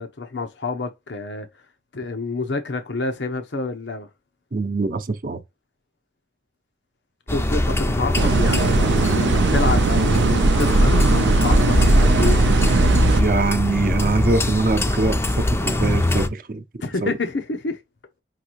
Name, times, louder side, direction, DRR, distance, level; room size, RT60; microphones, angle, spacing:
voice 1, 0.0-1.5 1.9-4.1 7.3-12.4 16.8-17.8, left 3 dB, 90° left, 0.8 m, -28 dB
voice 2, 4.5-5.4 13.1-16.6 17.0-17.1, right 3 dB, 50° right, 0.6 m, -23 dB
sound 1, 7.3-16.3, left 1 dB, 15° left, 0.4 m, -22 dB
sound 2, 8.2-13.2, right 3 dB, 90° right, 0.5 m, -18 dB
5.9 x 2.6 x 3.0 m
head